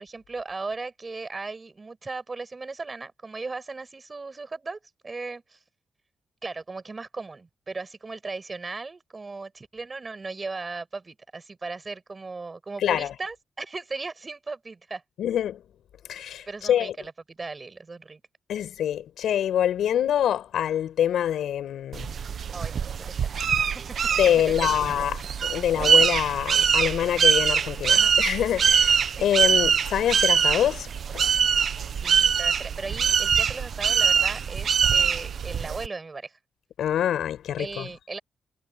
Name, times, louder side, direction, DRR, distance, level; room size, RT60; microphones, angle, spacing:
voice 1, 0.0-5.6 6.4-15.0 16.5-18.2 22.5-23.8 24.4-24.7 27.9-28.1 29.1-29.3 31.9-36.4 37.6-38.2, right 3 dB, 25° right, 5.7 m, -37 dB
voice 2, 12.8-13.1 15.2-15.6 16.1-16.9 18.5-22.2 24.2-31.3 36.8-37.9, left 10 dB, 85° left, 7.3 m, -25 dB
sound 1, 21.9-35.9, right 7 dB, 55° right, 1.2 m, -23 dB
wide cardioid pair, 150°, 0 cm